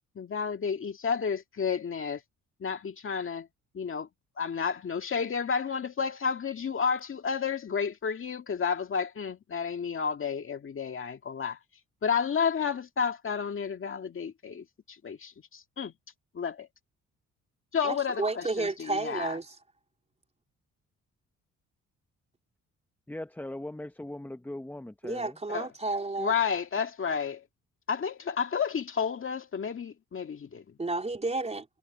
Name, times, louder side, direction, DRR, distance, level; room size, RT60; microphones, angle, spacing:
voice 1, 0.2-2.2 2.6-3.5 3.7-4.1 4.4-11.6 12.0-14.6 15.0-15.9 16.3-16.7 17.7-19.4 25.5-25.7 26.2-27.4 27.9-30.6, left 6 dB, 45° left, 2.0 m, -31 dB
voice 2, 17.8-19.6 25.0-26.3 30.8-31.7, right 3 dB, 20° right, 3.7 m, -31 dB
voice 3, 23.1-25.4, left 1 dB, 5° left, 0.9 m, -39 dB
cardioid pair, 90°, 30 cm